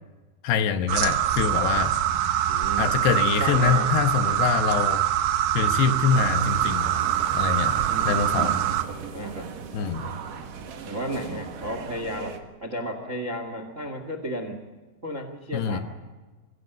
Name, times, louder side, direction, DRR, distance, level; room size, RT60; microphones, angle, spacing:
voice 1, 0.4-2.0 2.8-5.0 5.5-6.9 7.3-8.6 9.7-10.1 15.5-15.8, left 6 dB, 75° left, 9 dB, 3.1 m, -24 dB
sound 1, 0.9-8.8, right 11 dB, 75° right, 3.1 m, -24 dB
voice 2, 2.5-2.9 3.4-3.9 7.9-8.4 9.1-9.5 10.8-14.7 15.0-15.8, equal, 30° right, 8 dB, 1.3 m, -33 dB
sound 2, 6.1-12.4, right 6 dB, 60° right, 2.9 m, -37 dB
24.0 x 17.0 x 9.0 m, 1.3 s
omnidirectional pair, 5.0 m